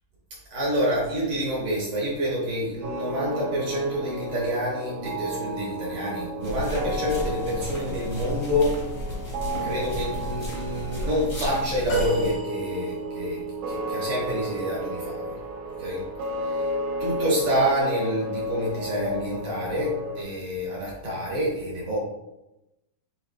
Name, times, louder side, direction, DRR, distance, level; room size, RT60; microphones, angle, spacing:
voice 1, 0.5-8.8 9.6-13.4 13.7-15.3 15.8-16.0 16.4-16.7 17.0-22.0, equal, 65° right, -5 dB, 1.4 m, -27 dB
sound 1, 2.8-20.2, equal, 90° right, 1.4 m, -33 dB
sound 2, 6.4-12.3, equal, 50° left, 0.9 m, -33 dB
sound 3, 11.9-13.3 15.7-15.9 17.2-17.3, right 4 dB, 85° left, 2.9 m, -32 dB
6.9 x 2.9 x 2.4 m, 0.94 s
omnidirectional pair, 3.9 m